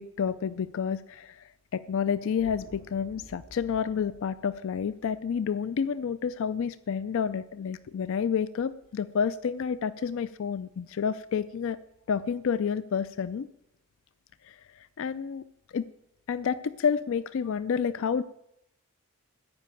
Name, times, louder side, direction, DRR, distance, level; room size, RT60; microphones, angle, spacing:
voice 1, 0.0-1.4 1.7-11.8 12.1-13.5 14.5-14.6 15.0-15.4 15.7-15.9 16.3-18.2, left 7 dB, 60° left, 15 dB, 0.4 m, -29 dB
sound 1, 2.3-6.7, equal, 80° right, 4.4 m, -53 dB
14.0 x 5.6 x 8.9 m, 0.84 s
head